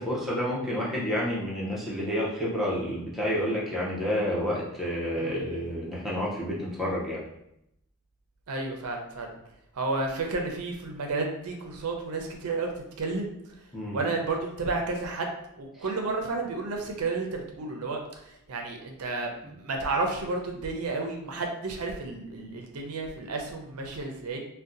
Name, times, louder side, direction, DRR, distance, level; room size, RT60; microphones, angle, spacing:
voice 1, 0.0-7.2 13.7-14.0 15.8-15.9 19.4-19.5, equal, ahead, -7 dB, 0.6 m, -29 dB
voice 2, 5.2-5.6 8.5-9.3 9.7-12.7 13.0-13.3 13.9-18.0 18.5-24.4, right 3 dB, 80° right, 2 dB, 0.5 m, -31 dB
2.6 x 2.2 x 3.7 m, 0.80 s
head